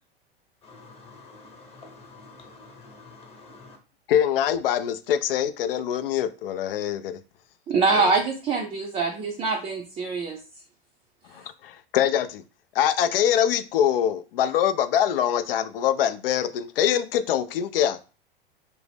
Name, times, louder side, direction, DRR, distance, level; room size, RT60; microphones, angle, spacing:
voice 1, 0.6-3.8, left 3 dB, 20° left, 1.0 m, -48 dB
voice 2, 4.1-7.2 11.3-12.4 12.7-18.0, left 10 dB, 75° left, 0.5 m, -24 dB
voice 3, 7.7-10.4 11.3-11.4, right 4 dB, 20° right, 0.4 m, -24 dB
2.6 x 2.0 x 3.4 m
hypercardioid pair, 100°, 29 cm